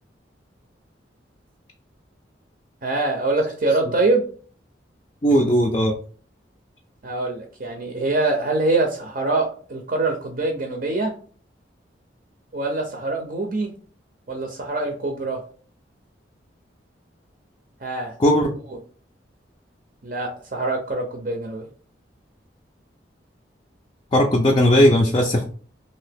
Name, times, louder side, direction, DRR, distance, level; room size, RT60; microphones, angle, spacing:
voice 1, 2.8-4.3 7.0-11.2 12.5-13.7 14.3-15.4 17.8-18.1 18.7-18.8 20.0-21.7, right 2 dB, 50° right, 3 dB, 0.5 m, -24 dB
voice 2, 5.2-5.9 18.2-18.5 24.1-25.4, equal, 25° left, 0 dB, 0.4 m, -17 dB
2.8 x 2.7 x 3.4 m, 0.43 s
head